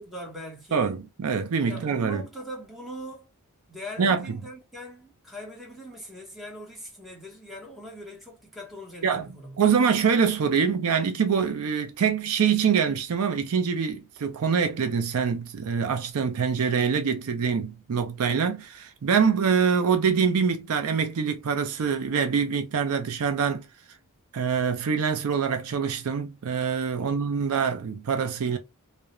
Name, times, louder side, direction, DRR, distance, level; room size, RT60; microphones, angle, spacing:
voice 1, 0.0-0.9 1.7-3.3 3.7-9.6 27.0-27.2, equal, ahead, 0.9 m, -41 dB
voice 2, 0.7-2.2 4.0-4.4 9.0-9.2 9.6-23.7 24.3-28.6, right 6 dB, 70° right, 0.4 m, -25 dB
2.3 x 2.1 x 2.8 m
head